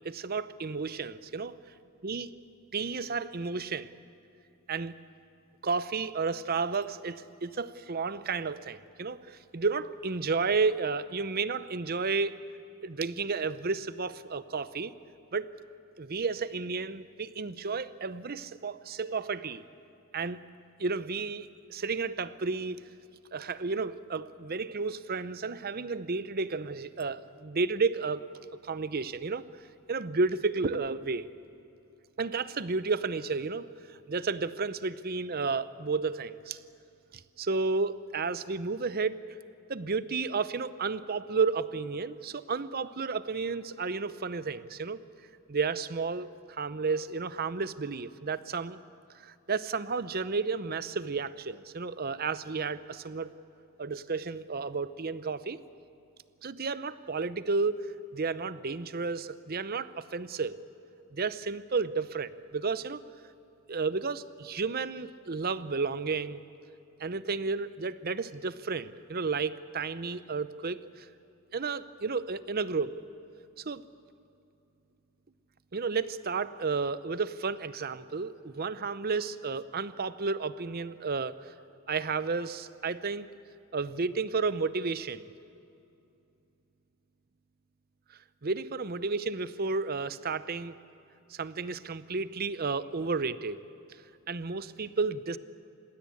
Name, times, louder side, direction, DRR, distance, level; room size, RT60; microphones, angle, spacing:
voice 1, 0.0-1.6 2.0-2.3 2.7-3.9 4.7-4.9 5.6-12.4 12.8-14.9 15.3-15.5 16.0-19.6 20.1-20.4 20.8-22.8 23.3-28.2 28.6-29.4 29.9-31.3 32.2-36.6 37.1-39.2 39.7-45.0 45.5-48.8 49.2-53.3 53.8-55.6 56.4-57.8 58.1-60.6 61.1-63.0 63.7-66.4 67.0-71.1 71.5-73.0 73.6-73.8 75.7-81.5 81.9-83.3 83.7-85.3 88.4-90.8 91.3-93.6 94.3-95.4, right 4 dB, 45° right, 15 dB, 0.7 m, -32 dB
28.5 x 16.5 x 8.6 m, 2.8 s
head